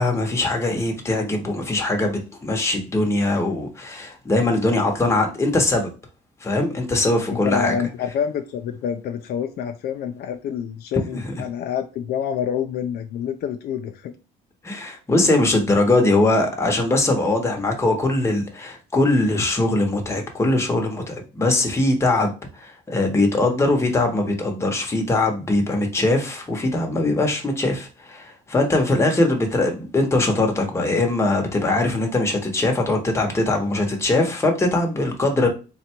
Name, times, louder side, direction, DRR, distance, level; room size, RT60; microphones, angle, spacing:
voice 1, 0.0-5.9 6.4-7.7 11.1-11.2 14.6-35.5, left 2 dB, 15° left, 0.9 m, -21 dB
voice 2, 7.3-14.1, left 8 dB, 60° left, 0.4 m, -27 dB
3.9 x 2.2 x 4.3 m
cardioid pair, 145°, 18 cm